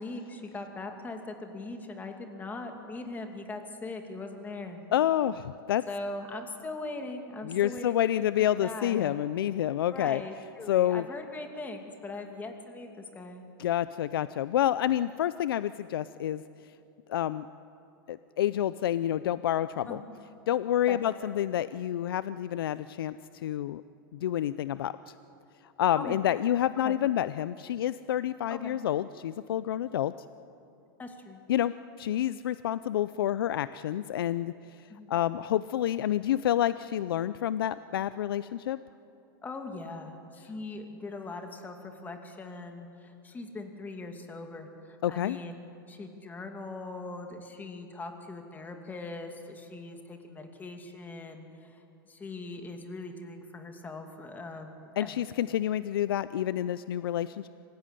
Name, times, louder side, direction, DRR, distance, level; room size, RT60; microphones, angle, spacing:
voice 1, 0.0-4.8 5.9-9.2 9.9-13.4 19.9-20.0 20.9-21.0 26.0-26.2 26.8-27.0 28.5-28.8 31.0-31.4 34.9-35.1 39.4-45.6 45.9-55.1, left 2 dB, 15° left, 5 dB, 2.5 m, -40 dB
voice 2, 4.9-5.8 7.4-10.2 10.7-11.0 13.6-16.4 17.1-17.5 18.1-20.0 20.5-23.8 24.1-25.1 25.8-30.1 31.5-34.5 34.8-38.8 45.0-45.4 55.0-57.5, left 11 dB, 85° left, 15 dB, 0.5 m, -28 dB
25.5 x 16.0 x 9.9 m, 2.8 s
supercardioid pair, 135°, 12 cm